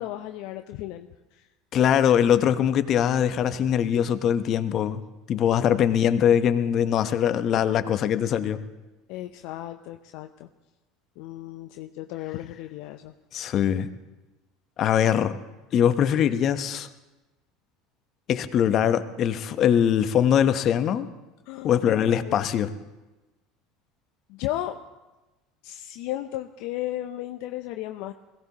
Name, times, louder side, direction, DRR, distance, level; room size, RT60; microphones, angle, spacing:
voice 1, 0.0-1.5 5.5-5.7 9.1-10.5 11.2-13.1 21.5-21.8 22.2-22.7 24.3-24.7 25.6-28.1, left 14 dB, 65° left, 7 dB, 0.6 m, -35 dB
voice 2, 1.7-5.0 5.3-8.6 13.3-13.9 14.8-15.4 15.7-16.9 18.3-21.1 21.6-22.7, left 9 dB, 50° left, 11 dB, 0.9 m, -22 dB
21.5 x 16.5 x 2.9 m, 1.1 s
hypercardioid pair, 75°, 0 cm